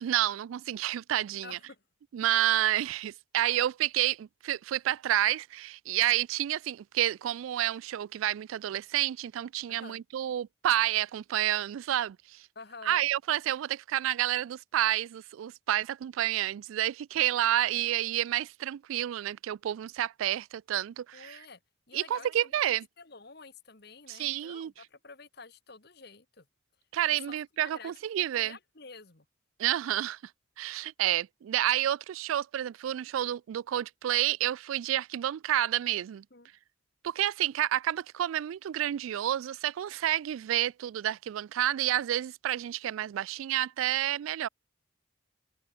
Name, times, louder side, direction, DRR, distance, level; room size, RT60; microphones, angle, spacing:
voice 1, 0.0-1.6 2.1-12.5 12.9-21.4 21.9-22.9 24.1-24.7 26.9-28.6 29.6-30.2 30.6-36.2 37.0-44.5, right 12 dB, 80° right, 0.3 m, -29 dB
voice 2, 1.4-1.8 9.7-10.0 12.6-13.0 21.1-21.6 21.9-26.5 27.3-29.3 36.3-36.5, left 4 dB, 50° left, 1.9 m, -50 dB
head